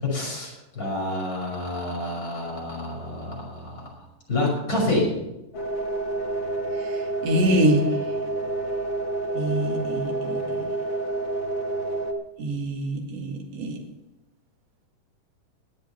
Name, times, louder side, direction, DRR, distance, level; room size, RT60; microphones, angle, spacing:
voice 1, 0.0-5.1, left 2 dB, 25° left, -2 dB, 6.1 m, -28 dB
sound 1, 5.5-12.1, right 2 dB, 50° left, 1.7 m, -28 dB
voice 2, 7.2-7.8 9.4-10.4 12.4-13.8, right 1 dB, 55° right, 2 dB, 3.0 m, -24 dB
21.0 x 7.9 x 5.8 m, 0.93 s
omnidirectional pair, 3.7 m